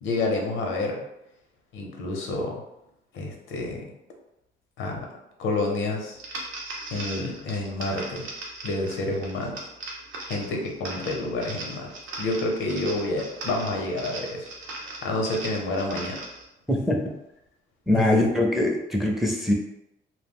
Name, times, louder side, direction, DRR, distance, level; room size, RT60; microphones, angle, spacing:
voice 1, 0.0-1.0 1.7-2.6 3.1-3.9 4.8-5.1 5.4-6.2 6.9-8.3 8.6-9.6 10.3-11.9 12.2-14.5 15.0-16.2 17.9-18.2, left 2 dB, 85° left, 1 dB, 0.6 m, -28 dB
sound 1, 6.2-16.4, right 2 dB, 85° right, 0.7 m, -38 dB
voice 2, 17.9-19.5, left 1 dB, ahead, 1 dB, 0.5 m, -22 dB
2.2 x 2.1 x 3.5 m, 0.85 s
cardioid pair, 90°, 20 cm